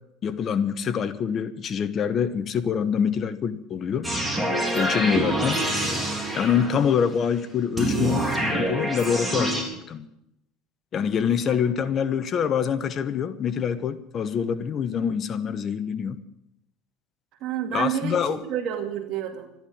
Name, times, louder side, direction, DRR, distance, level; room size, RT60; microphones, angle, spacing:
voice 1, 0.2-4.1 4.7-5.6 6.3-10.1 10.9-16.2 17.7-18.4, left 7 dB, 40° left, 13 dB, 1.0 m, -25 dB
sound 1, 4.0-7.0 7.8-9.6, right 1 dB, ahead, 3.8 m, -26 dB
voice 2, 5.0-5.4 6.5-6.9 11.5-11.6 17.4-19.5, right 9 dB, 60° right, 5 dB, 2.4 m, -30 dB
13.5 x 10.5 x 8.7 m, 0.82 s
supercardioid pair, 115°, 0 cm